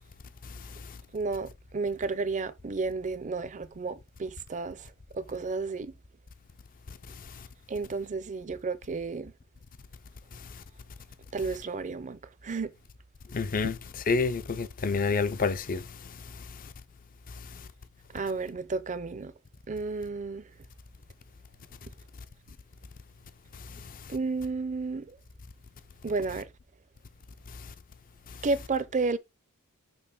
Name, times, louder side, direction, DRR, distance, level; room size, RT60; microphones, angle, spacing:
voice 1, 1.1-5.9 7.7-9.3 11.3-12.7 13.6-13.7 18.1-19.3 19.7-20.5 24.1-25.2 26.0-26.5 28.4-29.2, right 3 dB, 35° right, 0.5 m, -32 dB
voice 2, 13.3-13.7 14.1-15.8, left 4 dB, 40° left, 0.5 m, -27 dB
6.3 x 3.0 x 5.4 m
head